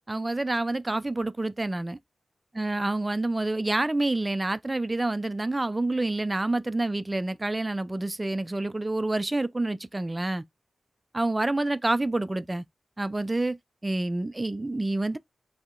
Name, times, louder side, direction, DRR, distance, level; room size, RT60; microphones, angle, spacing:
voice 1, 0.1-2.0 2.6-10.4 11.1-12.6 13.0-13.6 13.8-15.2, right 2 dB, 25° right, 0.3 m, -28 dB
2.7 x 2.0 x 3.6 m
cardioid pair, 45°, 0 cm